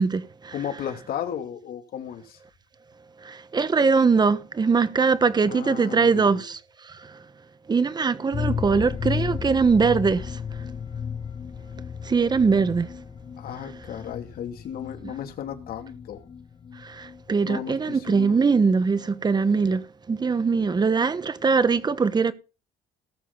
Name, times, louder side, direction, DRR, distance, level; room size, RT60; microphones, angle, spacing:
voice 1, 0.0-0.5 3.2-7.2 7.7-10.6 12.0-12.9 15.0-15.1 16.8-22.3, right 5 dB, 25° right, 1.2 m, -22 dB
voice 2, 0.5-2.4 5.4-6.4 13.4-16.2 17.4-18.4, left 9 dB, 60° left, 2.7 m, -34 dB
sound 1, 8.3-17.9 18.2-18.3 18.6-18.7, left 7 dB, 30° left, 0.6 m, -34 dB
18.5 x 6.7 x 4.0 m
cardioid pair, 110°, 17 cm